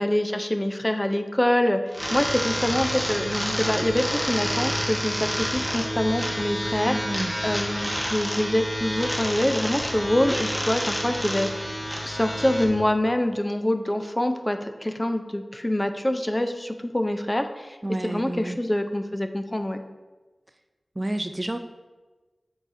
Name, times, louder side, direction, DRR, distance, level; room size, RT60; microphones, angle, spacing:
voice 1, 0.0-11.7 12.0-17.8 18.0-19.8, left 1 dB, 20° left, 7 dB, 0.5 m, -25 dB
sound 1, 1.9-12.6, equal, 5° left, 1.3 m, -29 dB
voice 2, 6.8-7.3 17.8-18.6 21.0-21.6, right 1 dB, 30° right, 7 dB, 0.4 m, -29 dB
7.5 x 5.6 x 2.6 m, 1.2 s
cardioid pair, 40°, 0 cm